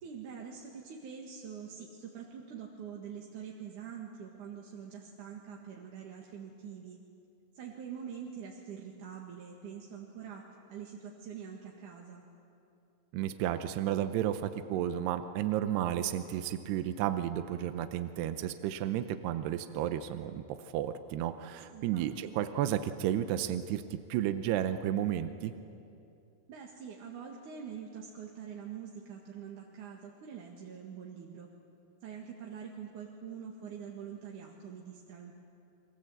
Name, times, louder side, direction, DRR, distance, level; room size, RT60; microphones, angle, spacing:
voice 1, 0.0-7.0 7.5-10.4 10.7-12.2 21.7-22.4 26.5-31.5 32.0-35.3, right 7 dB, 55° right, -2 dB, 3.0 m, -45 dB
voice 2, 13.1-20.4 20.7-23.8 24.1-25.5, right 11 dB, 80° right, 9 dB, 2.8 m, -32 dB
29.5 x 24.0 x 8.0 m, 2.6 s
omnidirectional pair, 4.9 m